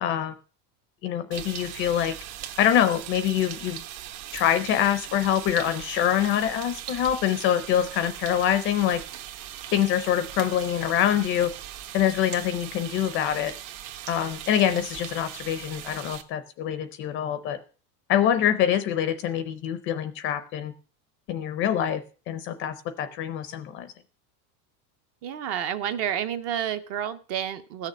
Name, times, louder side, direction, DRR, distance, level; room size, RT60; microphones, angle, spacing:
voice 1, 0.0-0.4 1.0-2.1 2.6-3.8 4.3-9.0 9.7-11.5 11.9-13.5 14.1-17.6 18.1-20.7 21.3-22.0 22.3-23.9, left 10 dB, 25° left, 12 dB, 0.5 m, -25 dB
sound 1, 1.3-16.2, right 12 dB, 60° right, 1.4 m, -40 dB
voice 2, 25.2-27.9, right 9 dB, 30° right, 11 dB, 0.6 m, -30 dB
15.0 x 6.6 x 7.1 m, 0.37 s
supercardioid pair, 175°, 48 cm